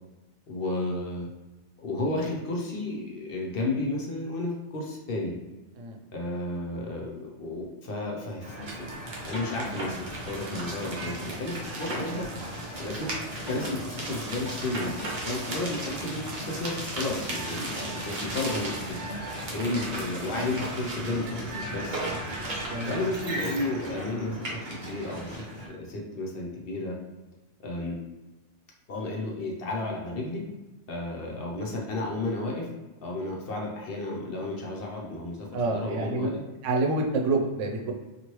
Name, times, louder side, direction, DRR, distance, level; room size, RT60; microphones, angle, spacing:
voice 1, 0.5-1.3 1.8-5.3 6.1-8.9 9.2-12.3 12.8-19.0 19.5-22.1 22.8-27.0 27.6-28.0 28.9-30.4 30.9-32.7 33.0-36.4, left 2 dB, 60° left, -1 dB, 0.8 m, -32 dB
sound 1, 8.4-25.7, right 1 dB, 50° right, 0.8 m, -35 dB
voice 2, 35.5-36.3 36.6-37.9, right 3 dB, 90° right, 1 dB, 1.0 m, -27 dB
2.9 x 2.5 x 3.0 m, 1.1 s
omnidirectional pair, 1.2 m